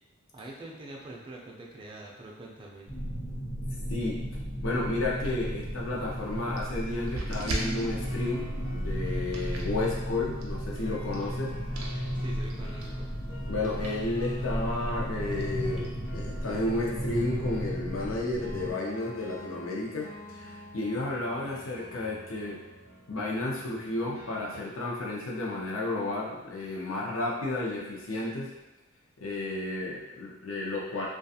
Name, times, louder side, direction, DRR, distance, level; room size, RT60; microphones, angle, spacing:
voice 1, 0.3-2.9 9.8-10.4 12.2-13.1, right 2 dB, 25° right, -2 dB, 0.4 m, -45 dB
sound 1, 2.9-18.7, equal, 90° left, 1.2 m, -34 dB
voice 2, 4.6-11.5 13.5-22.6 23.1-28.5 29.2-31.1, left 2 dB, 70° left, -3 dB, 0.6 m, -32 dB
sound 2, 4.7-16.8, right 1 dB, 90° right, 0.5 m, -43 dB
sound 3, 7.5-24.6, equal, 35° left, 0.7 m, -48 dB
2.3 x 2.3 x 2.7 m, 1.0 s
head